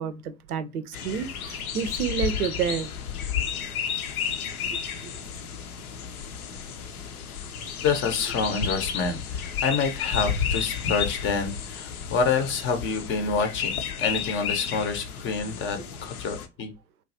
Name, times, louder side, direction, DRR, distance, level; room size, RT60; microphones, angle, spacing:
voice 1, 0.0-2.9 4.7-5.1, right 7 dB, 75° right, 0.5 m, -30 dB
sound 1, 0.9-16.5, left 7 dB, 70° left, 0.6 m, -32 dB
voice 2, 7.8-13.7 14.0-16.7, left 5 dB, 25° left, 0.6 m, -27 dB
3.1 x 2.3 x 2.6 m
figure-of-eight pair, 80°, 45 cm